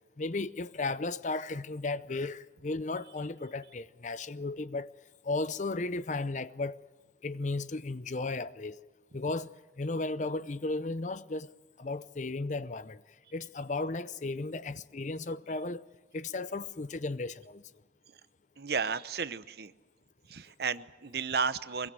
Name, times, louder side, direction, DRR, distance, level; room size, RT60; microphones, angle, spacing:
voice 1, 0.2-4.9 5.2-6.8 7.2-8.8 9.1-9.5 9.8-11.5 11.8-13.0 13.3-15.8 16.1-17.6, left 3 dB, 45° left, 0.7 m, -35 dB
voice 2, 18.6-19.7 20.3-21.9, right 5 dB, 65° right, 0.9 m, -33 dB
24.0 x 21.5 x 7.7 m
head